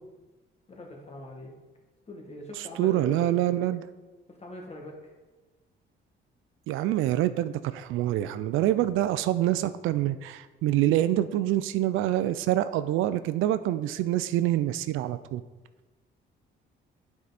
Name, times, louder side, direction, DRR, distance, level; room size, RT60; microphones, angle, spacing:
voice 1, 0.7-1.5 2.1-3.6 4.3-5.0, left 1 dB, 30° left, 0 dB, 1.8 m, -42 dB
voice 2, 2.8-3.8 6.7-15.4, right 13 dB, 90° right, 13 dB, 0.4 m, -26 dB
9.1 x 4.8 x 4.1 m, 1.2 s
cardioid pair, 90°, 20 cm